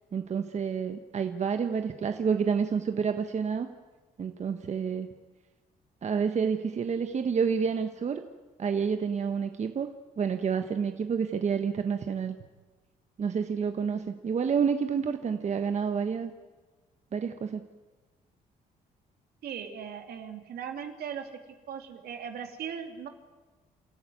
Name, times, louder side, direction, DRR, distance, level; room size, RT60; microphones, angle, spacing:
voice 1, 0.1-3.7 4.2-5.1 6.0-8.2 8.6-9.9 10.2-12.4 13.2-16.3 17.1-17.6, right 6 dB, 45° right, 7 dB, 1.3 m, -29 dB
voice 2, 19.4-21.3 21.7-23.1, right 8 dB, 75° right, 5 dB, 2.8 m, -38 dB
29.0 x 14.0 x 9.4 m, 1.3 s
cardioid pair, 90°, 16 cm